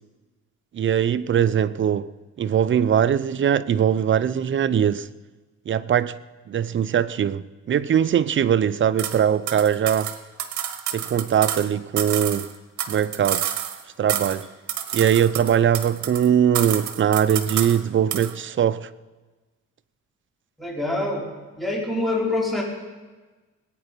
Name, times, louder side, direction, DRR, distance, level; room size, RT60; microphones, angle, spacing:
voice 1, 0.7-2.1 2.4-5.1 5.7-6.2 6.5-10.1 10.9-12.5 12.9-13.5 14.0-14.5 14.9-18.9, right 9 dB, 40° right, 0.6 m, -21 dB
sound 1, 9.0-9.2 9.5-11.7 12.0-13.8 14.1-14.4 14.7-16.3 16.5-17.8 18.1-18.3, right 10 dB, 70° right, 1.2 m, -29 dB
voice 2, 20.6-21.3 21.6-22.6, left 2 dB, ahead, 3.8 m, -25 dB
19.0 x 9.2 x 5.2 m
cardioid pair, 90°, 30 cm